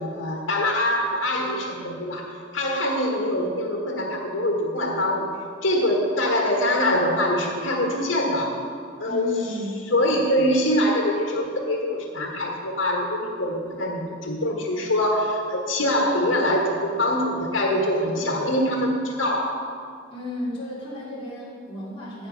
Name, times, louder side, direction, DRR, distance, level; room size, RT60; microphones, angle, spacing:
voice 1, 0.0-5.3 5.6-8.5 9.0-9.3 9.9-19.6, left 1 dB, 90° left, -1 dB, 1.7 m, -24 dB
voice 2, 9.0-9.8 20.1-22.3, equal, 30° left, -9 dB, 3.2 m, -33 dB
15.0 x 7.6 x 5.3 m, 2.3 s
head